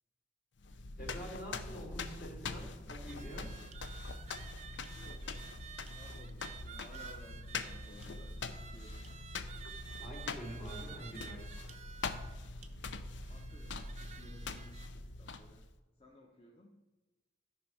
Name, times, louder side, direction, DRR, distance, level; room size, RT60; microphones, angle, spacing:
sound 1, 0.6-15.7, left 3 dB, 80° left, 0.6 m, -43 dB
voice 1, 1.0-3.5 10.0-11.4, equal, 50° left, -2 dB, 3.0 m, -46 dB
sound 2, 3.1-14.9, right 8 dB, 35° right, 0.6 m, -52 dB
voice 2, 4.9-9.0 10.3-11.5 13.3-15.6 15.9-16.8, left 1 dB, 30° left, -1 dB, 0.9 m, -59 dB
13.0 x 5.4 x 4.8 m, 1.2 s
head